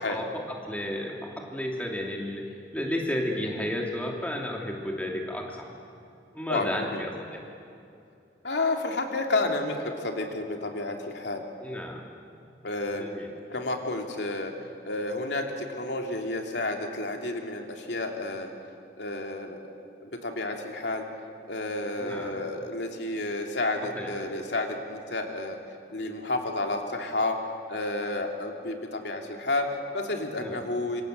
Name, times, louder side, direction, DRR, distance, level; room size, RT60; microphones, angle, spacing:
voice 1, 0.0-5.7 6.3-7.4 11.6-12.0 12.9-13.3 22.0-22.3 23.9-24.1 30.4-30.6, left 1 dB, 10° left, 0 dB, 3.0 m, -33 dB
voice 2, 6.5-7.1 8.4-11.4 12.6-13.0 13.5-14.5 14.8-18.5 19.0-19.6 20.0-21.0 21.5-25.6 25.9-27.4 27.7-31.0, left 2 dB, 75° left, 3 dB, 2.8 m, -31 dB
27.0 x 26.0 x 8.0 m, 2.6 s
head